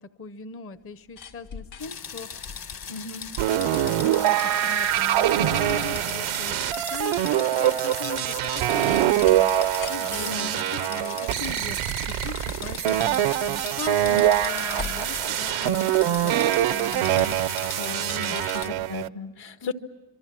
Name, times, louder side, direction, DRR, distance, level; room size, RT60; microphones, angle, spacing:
voice 1, 0.0-2.4 3.5-9.5 9.9-11.8 12.1-17.6 18.1-18.4 19.6-19.7, left 4 dB, 30° left, 14 dB, 0.7 m, -39 dB
sound 1, 0.8-18.4 18.7-18.8, left 6 dB, 90° left, 2.7 m, -45 dB
sound 2, 1.8-18.7, left 7 dB, 50° left, 1.3 m, -39 dB
voice 2, 2.9-3.3 10.2-10.5 17.8-19.7, left 5 dB, 70° left, 8 dB, 1.7 m, -35 dB
sound 3, 3.4-19.1, right 12 dB, 85° right, 0.7 m, -24 dB
26.5 x 24.0 x 7.5 m, 1.3 s
cardioid pair, 90°, 48 cm